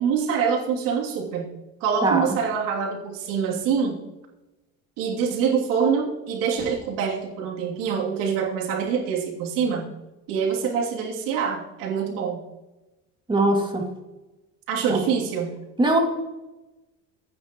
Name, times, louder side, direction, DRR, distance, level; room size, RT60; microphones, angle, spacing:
voice 1, 0.0-1.5 1.8-4.0 5.0-9.9 10.3-12.4 14.7-15.5, right 6 dB, 90° right, -2 dB, 3.0 m, -25 dB
voice 2, 2.0-2.3 13.3-13.9 14.9-15.0 15.8-16.0, right 2 dB, 15° right, 0 dB, 2.4 m, -21 dB
25.0 x 9.4 x 3.1 m, 1.0 s
cardioid pair, 130°, 32 cm